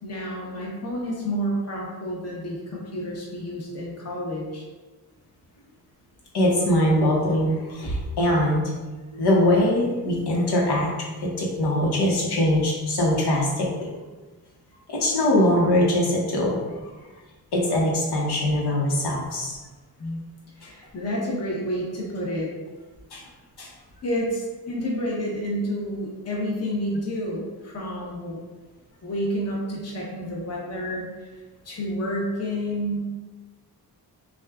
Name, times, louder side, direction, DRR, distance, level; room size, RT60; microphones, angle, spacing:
voice 1, 0.0-4.6 20.0-20.3 20.6-22.5 24.0-28.4 29.0-31.4 31.6-33.0, equal, 40° left, -4 dB, 0.9 m, -29 dB
voice 2, 6.3-8.7 9.1-10.9 11.2-13.9 14.9-16.6 17.5-19.6 23.1-23.2 23.6-23.7, left 1 dB, 85° left, -3 dB, 1.1 m, -22 dB
6.1 x 2.4 x 2.4 m, 1.3 s
wide cardioid pair, 120°, 38 cm